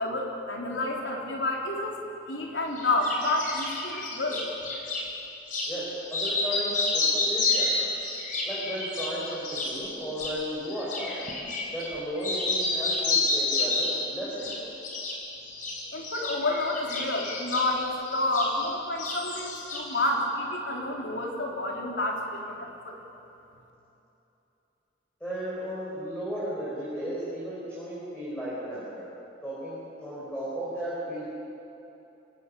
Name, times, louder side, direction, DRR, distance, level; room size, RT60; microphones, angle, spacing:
voice 1, 0.0-2.0 2.3-4.4 15.9-23.0, left 2 dB, 75° left, 0 dB, 3.6 m, -29 dB
sound 1, 2.8-5.1 5.5-5.7 6.1-11.9 12.2-14.0 14.4-15.2 15.5-18.7 19.0-20.0, left 3 dB, 45° left, 3.8 m, -30 dB
voice 2, 5.7-7.9 8.5-11.3 11.7-14.7 25.2-29.0 29.4-31.2, equal, 5° left, -9 dB, 5.2 m, -35 dB
26.0 x 17.5 x 6.9 m, 3.0 s
head